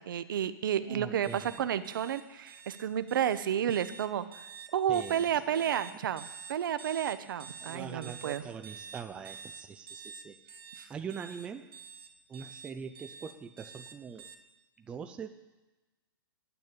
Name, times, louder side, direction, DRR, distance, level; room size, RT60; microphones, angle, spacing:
voice 1, 0.0-4.2 4.7-8.4 10.8-10.9, right 9 dB, 65° right, 12 dB, 0.8 m, -31 dB
voice 2, 0.8-1.5 4.9-5.6 7.6-10.6 10.9-11.7 12.3-14.3 14.8-15.4, right 6 dB, 10° right, 7 dB, 0.3 m, -43 dB
sound 1, 1.2-14.3, right 6 dB, 80° right, 1.5 m, -48 dB
9.3 x 8.2 x 8.7 m, 1.1 s
hypercardioid pair, 155°, 12 cm